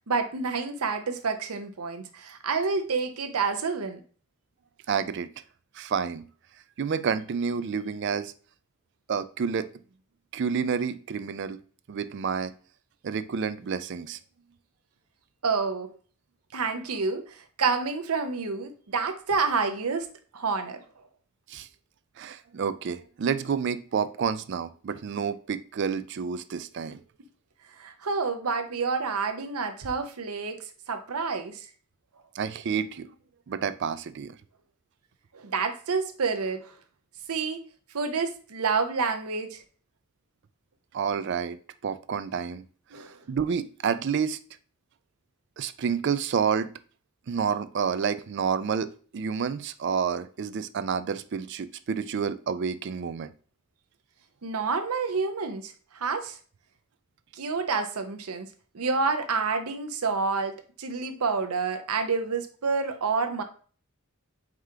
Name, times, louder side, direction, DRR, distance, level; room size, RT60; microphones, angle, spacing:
voice 1, 0.1-4.0 15.4-15.9 16.5-20.1 20.3-20.8 27.8-30.6 30.9-31.7 35.3-36.7 37.3-37.6 37.9-39.6 42.9-43.2 54.4-56.4 57.3-58.5 58.7-63.4, right 4 dB, 85° right, 0.7 m, -28 dB
voice 2, 4.9-5.3 5.8-6.3 6.8-8.3 9.1-9.7 10.3-11.6 11.9-12.5 13.0-14.2 21.5-21.7 22.2-27.0 32.3-33.1 33.5-34.3 40.9-41.6 41.8-42.6 43.3-44.4 45.6-46.7 47.3-53.3, right 6 dB, 55° right, 0.3 m, -29 dB
4.8 x 2.8 x 3.6 m
head